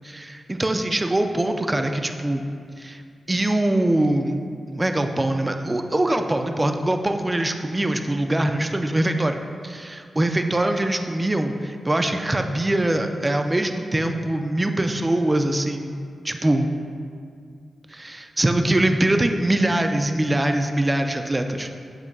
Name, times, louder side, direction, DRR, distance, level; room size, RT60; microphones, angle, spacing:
voice 1, 0.0-2.4 2.8-3.0 3.3-4.4 4.7-9.4 9.6-15.9 16.2-16.7 17.9-21.7, right 1 dB, 20° right, 6 dB, 0.4 m, -23 dB
7.3 x 2.8 x 5.2 m, 2.3 s
cardioid pair, 80°, 0 cm